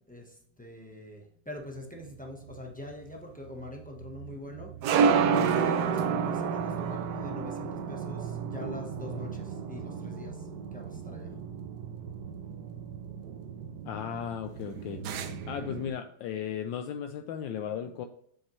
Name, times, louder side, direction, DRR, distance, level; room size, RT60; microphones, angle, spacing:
voice 1, 0.1-4.7 5.4-11.4, left 1 dB, 10° left, 0 dB, 0.5 m, -43 dB
sound 1, 1.8-15.9, right 6 dB, 70° right, 1.1 m, -31 dB
voice 2, 13.9-15.0 15.5-18.1, left 8 dB, 75° left, 7 dB, 1.2 m, -35 dB
7.9 x 6.5 x 3.1 m, 0.67 s
omnidirectional pair, 2.2 m